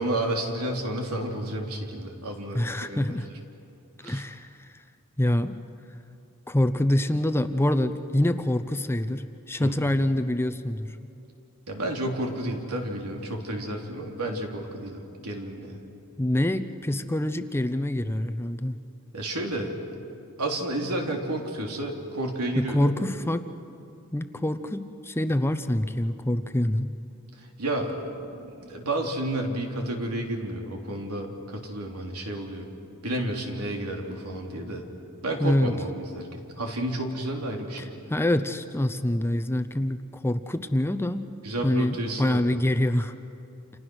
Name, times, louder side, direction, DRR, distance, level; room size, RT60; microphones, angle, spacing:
voice 1, 0.0-3.1 4.0-4.2 9.6-9.7 11.7-15.8 19.1-19.7 20.4-22.9 27.6-32.6 33.0-34.8 35.2-37.9 41.4-42.6, right 1 dB, 85° right, 1 dB, 3.3 m, -31 dB
voice 2, 2.5-3.3 4.0-4.7 5.2-5.6 6.5-10.9 16.2-18.8 22.6-23.4 24.1-26.9 35.4-35.7 37.8-41.3 41.6-43.1, left 1 dB, 10° left, 10 dB, 0.7 m, -26 dB
29.0 x 28.0 x 6.3 m, 2.7 s
head